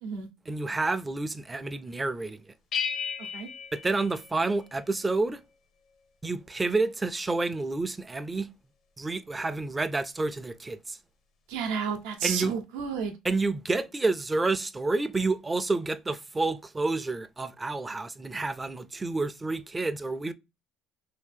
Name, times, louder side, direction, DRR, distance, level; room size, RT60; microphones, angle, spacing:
voice 1, 0.5-2.5 3.7-5.4 6.2-8.5 9.0-11.0 12.2-12.6 13.2-20.3, right 3 dB, 20° right, 0.4 m, -29 dB
sound 1, 2.7-4.9, left 6 dB, 60° left, 0.6 m, -35 dB
voice 2, 11.5-13.1, right 6 dB, 80° right, 0.7 m, -31 dB
3.0 x 2.8 x 3.3 m
supercardioid pair, 75°, 0 cm